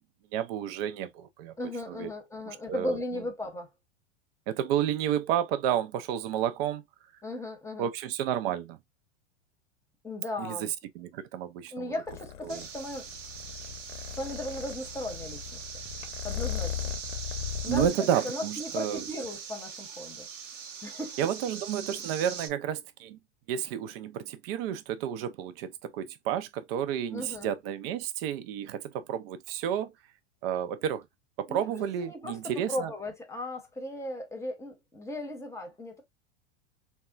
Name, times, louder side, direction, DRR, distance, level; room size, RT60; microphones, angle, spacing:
voice 1, 0.3-1.5 1.9-2.1 2.5-3.0 4.5-6.8 7.8-8.8 10.4-11.9 12.4-12.7 17.7-19.0 21.2-23.2 23.5-29.9 30.4-31.1 31.4-32.9, right 10 dB, 50° right, 0.6 m, -31 dB
voice 2, 1.6-3.7 7.2-7.9 10.0-10.7 11.7-13.1 14.1-15.8 16.2-16.9 17.6-17.8 18.2-20.3 20.8-21.2 27.1-27.5 31.5-32.4 32.7-36.0, left 1 dB, 10° left, 0.9 m, -36 dB
Purr, 12.1-17.9, left 10 dB, 75° left, 0.8 m, -37 dB
sound 1, 12.5-22.5, right 6 dB, 85° right, 0.8 m, -41 dB
3.4 x 2.2 x 2.4 m
hypercardioid pair, 105°, 36 cm